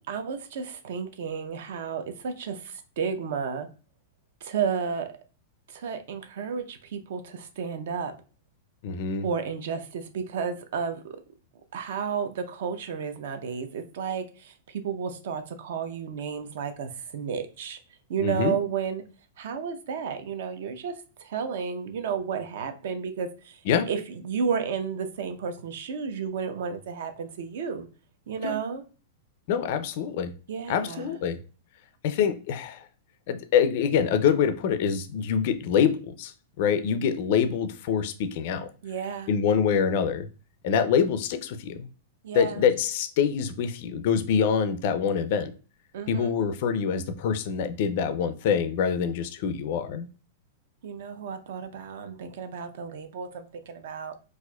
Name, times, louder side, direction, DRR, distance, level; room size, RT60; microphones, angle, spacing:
voice 1, 0.0-3.7 4.4-5.1 5.7-8.1 9.2-11.2 11.7-17.8 18.1-19.1 19.4-23.6 23.9-27.9 28.3-28.8 30.5-31.2 38.8-39.3 42.2-42.6 45.9-46.3 50.8-54.2, right 6 dB, 60° right, 0.5 m, -32 dB
voice 2, 8.8-9.3 18.2-18.5 23.7-23.9 28.4-28.5 29.5-30.3 30.7-31.4 32.0-32.9 33.3-38.7 39.3-40.3 40.6-41.9 42.3-45.5 46.1-50.1, left 7 dB, 45° left, 0.3 m, -25 dB
4.2 x 2.4 x 2.2 m
supercardioid pair, 170°, 0 cm